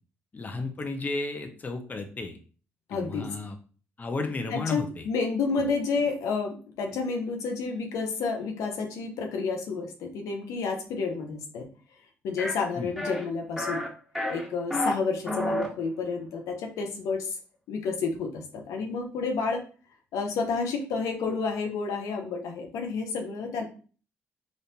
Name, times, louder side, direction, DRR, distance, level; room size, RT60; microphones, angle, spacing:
voice 1, 0.3-2.4 2.9-3.6 4.0-5.0 12.8-12.9, left 3 dB, 30° left, 5 dB, 0.6 m, -33 dB
voice 2, 2.9-3.3 4.5-11.7 12.2-13.8 14.3-17.4 17.7-19.6 20.1-23.6, left 4 dB, 80° left, 3 dB, 0.7 m, -30 dB
sound 1, 12.4-12.5 13.0-13.2 13.6-13.9 14.2-14.9 15.3-15.7, left 1 dB, 5° left, 1.5 m, -29 dB
3.6 x 2.5 x 2.8 m, 0.38 s
supercardioid pair, 70°, 5 cm